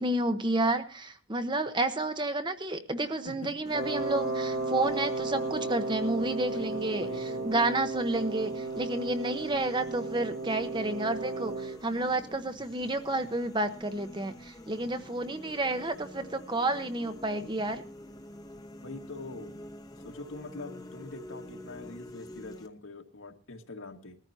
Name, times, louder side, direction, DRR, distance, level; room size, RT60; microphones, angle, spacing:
voice 1, 0.0-7.1 7.4-17.8, right 2 dB, 20° right, 9 dB, 0.9 m, -30 dB
sound 1, 3.7-22.7, equal, 20° left, 1.0 m, -47 dB
Wind instrument woodwind instrument, 3.7-11.8, right 3 dB, 50° right, 2.1 m, -34 dB
voice 2, 6.5-7.5 14.9-15.1 18.8-19.6 20.0-24.2, left 2 dB, 80° left, 4 dB, 1.8 m, -44 dB
21.0 x 14.0 x 2.8 m, 0.33 s
head